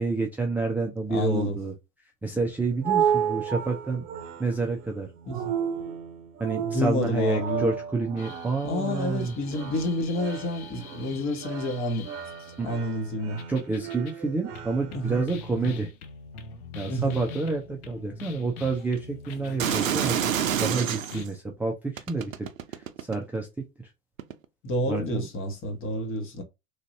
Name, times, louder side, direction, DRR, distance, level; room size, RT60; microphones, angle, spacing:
voice 1, 0.0-1.7 2.2-4.0 4.4-5.1 6.4-9.3 12.6-12.7 13.5-15.9 16.7-23.5 23.8-23.9 24.9-25.3, right 3 dB, 5° right, 0.5 m, -29 dB
voice 2, 1.1-1.6 5.3-5.5 6.6-7.7 8.6-12.1 12.6-13.4 14.9-15.2 16.9-17.2 24.6-26.4, left 1 dB, 30° left, 1.1 m, -29 dB
sound 1, 2.4-15.2, right 8 dB, 50° right, 0.7 m, -33 dB
sound 2, 8.2-12.7 13.4-14.2 14.5-21.3, left 4 dB, 50° left, 0.8 m, -43 dB
sound 3, 19.6-21.3 22.0-23.4 24.2-24.3, right 9 dB, 90° right, 0.5 m, -27 dB
3.2 x 2.6 x 2.6 m
hypercardioid pair, 95°, 40 cm